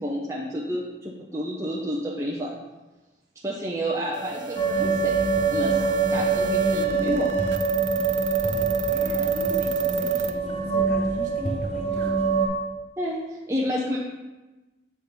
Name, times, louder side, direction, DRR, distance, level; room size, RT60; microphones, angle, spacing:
voice 1, 0.0-2.5 3.4-5.2 5.5-5.8 6.1-7.3 13.0-14.0, equal, 15° right, -5 dB, 0.7 m, -29 dB
sound 1, 4.1-10.3, right 5 dB, 85° right, 0.5 m, -30 dB
sound 2, 4.6-12.5, right 4 dB, 35° left, 1.2 m, -24 dB
voice 2, 8.8-12.2, right 1 dB, 45° right, -1 dB, 1.4 m, -40 dB
7.6 x 4.2 x 5.2 m, 1.1 s
head